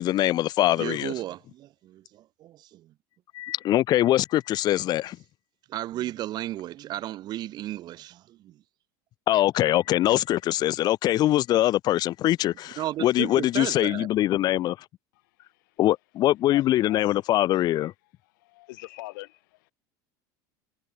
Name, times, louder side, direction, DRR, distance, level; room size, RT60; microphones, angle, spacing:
voice 1, 0.0-1.1 3.3-5.2 9.3-14.8 15.8-17.9, left 14 dB, 40° left, 1.1 m, -23 dB
voice 2, 0.7-2.9 5.7-8.5 12.8-14.1, right 14 dB, 40° right, 2.2 m, -34 dB
voice 3, 16.5-17.1 18.4-19.6, left 21 dB, 80° left, 3.1 m, -43 dB
supercardioid pair, 140°, 10 cm